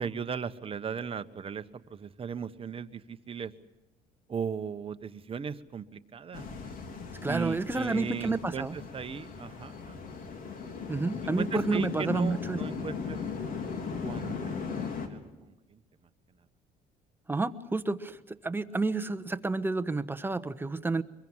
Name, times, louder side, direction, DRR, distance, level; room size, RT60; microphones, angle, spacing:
voice 1, 0.0-3.5 4.3-6.5 7.3-10.0 11.2-13.2 14.0-15.8, right 7 dB, 35° right, 10 dB, 1.2 m, -37 dB
sound 1, 6.3-15.1, left 5 dB, 55° left, 3.6 m, -37 dB
voice 2, 7.2-8.8 10.9-12.6 17.3-21.0, right 3 dB, 10° right, 9 dB, 1.1 m, -30 dB
25.0 x 22.5 x 7.4 m, 1.1 s
cardioid pair, 110°, 17 cm